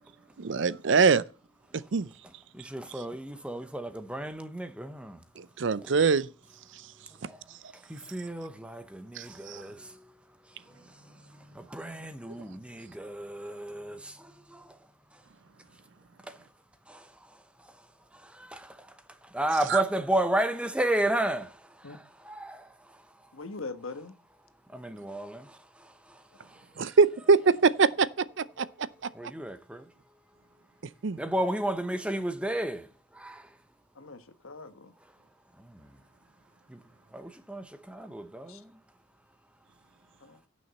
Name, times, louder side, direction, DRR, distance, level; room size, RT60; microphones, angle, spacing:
voice 1, 0.4-1.2 1.9-2.1 5.4-6.3 9.2-9.6 19.7-19.8 26.8-28.1 28.6-28.7 31.0-31.2, right 5 dB, 60° right, 0.5 m, -23 dB
voice 2, 2.7-5.2 7.9-9.8 11.7-14.0 18.5-18.7 19.3-21.5 22.3-22.6 24.7-25.4 29.2-29.8 31.2-32.8 33.2-33.4 37.1-38.6, right 1 dB, 5° right, 0.8 m, -31 dB
voice 3, 23.3-24.1 34.0-34.9 38.5-38.6 40.2-40.4, left 3 dB, 85° left, 1.3 m, -41 dB
17.0 x 6.3 x 4.2 m
head